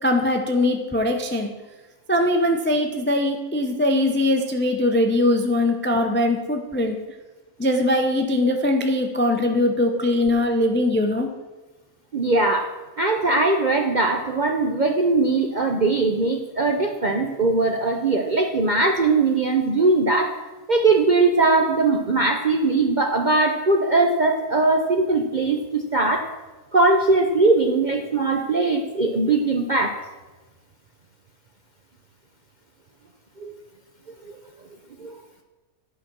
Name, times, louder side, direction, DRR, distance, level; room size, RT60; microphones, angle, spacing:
voice 1, 0.0-1.5 2.1-7.0 7.6-11.3, left 1 dB, 15° left, 4 dB, 0.4 m, -21 dB
voice 2, 12.1-12.7 13.0-20.3 20.7-26.3 26.7-30.0 33.4-33.5 35.0-35.1, right 3 dB, 50° right, 3 dB, 0.6 m, -20 dB
11.0 x 5.1 x 6.1 m, 1.2 s
omnidirectional pair, 1.6 m